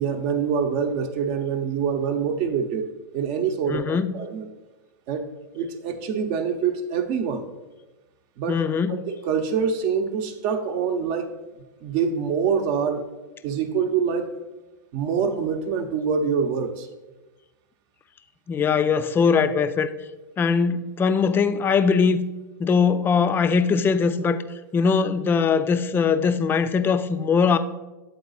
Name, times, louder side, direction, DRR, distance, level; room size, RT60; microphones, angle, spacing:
voice 1, 0.0-2.9 3.1-4.5 5.1-5.3 5.5-7.4 8.4-8.6 8.9-11.3 11.8-13.0 13.4-14.4 14.9-16.9, right 6 dB, 50° right, 0.8 m, -25 dB
voice 2, 3.7-4.2 8.5-9.0 18.5-19.9 20.4-22.2 22.6-24.4 24.7-27.6, left 5 dB, 20° left, 0.4 m, -21 dB
8.3 x 4.0 x 4.0 m
hypercardioid pair, 110°, 11 cm